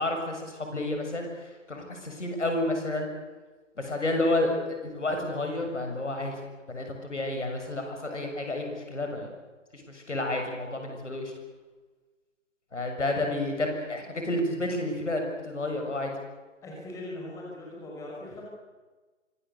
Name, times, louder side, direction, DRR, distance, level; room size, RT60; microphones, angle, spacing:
voice 1, 0.0-3.1 3.8-4.5 4.8-6.4 6.7-9.3 9.7-11.3 12.7-16.1, left 1 dB, 65° left, 4 dB, 7.1 m, -30 dB
voice 2, 16.6-18.4, left 1 dB, 10° left, -3 dB, 5.9 m, -40 dB
25.5 x 20.0 x 8.4 m, 1.3 s
figure-of-eight pair, 140°, 38 cm